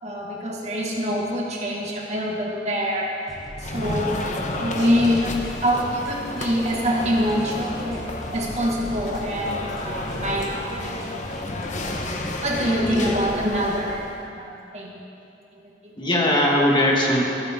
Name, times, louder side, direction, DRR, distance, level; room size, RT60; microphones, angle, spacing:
voice 1, 0.0-3.1 3.6-4.1 4.5-8.0 8.3-11.1 12.4-14.1 14.4-15.0 15.8-15.9, equal, 40° right, -2 dB, 1.9 m, -25 dB
sound 1, 3.3-13.2, equal, ahead, 2.9 m, -40 dB
sound 2, 3.6-14.2, left 2 dB, 45° left, 1.1 m, -31 dB
voice 2, 12.8-13.2 16.0-17.2, left 1 dB, 25° left, -3 dB, 1.9 m, -21 dB
24.5 x 9.6 x 3.8 m, 2.7 s
head